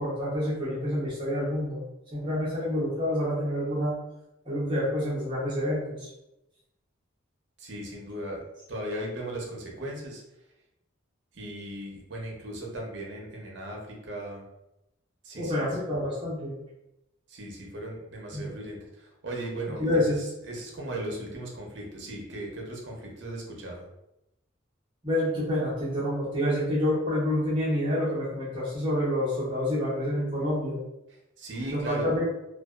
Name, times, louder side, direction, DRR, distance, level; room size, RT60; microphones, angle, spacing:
voice 1, 0.0-1.8 2.1-4.0 4.4-6.1 15.3-16.6 18.3-18.5 19.6-20.2 25.0-30.8 31.7-32.3, left 1 dB, 25° right, -8 dB, 0.7 m, -28 dB
voice 2, 7.6-8.4 8.7-10.2 11.3-14.4 15.2-15.7 17.3-23.9 31.4-32.1, right 1 dB, 60° right, -1 dB, 0.6 m, -37 dB
2.6 x 2.2 x 2.2 m, 0.89 s
head